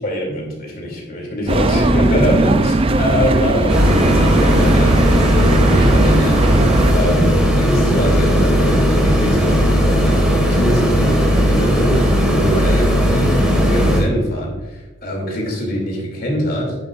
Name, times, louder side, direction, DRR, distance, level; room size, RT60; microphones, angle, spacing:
voice 1, 0.0-6.4 6.9-16.8, equal, 45° left, 0 dB, 2.7 m, -23 dB
sound 1, 1.5-6.9, right 2 dB, 25° right, 0.4 m, -18 dB
sound 2, 3.7-14.0, equal, 5° right, 1.7 m, -15 dB
10.0 x 10.0 x 2.5 m, 1.1 s
head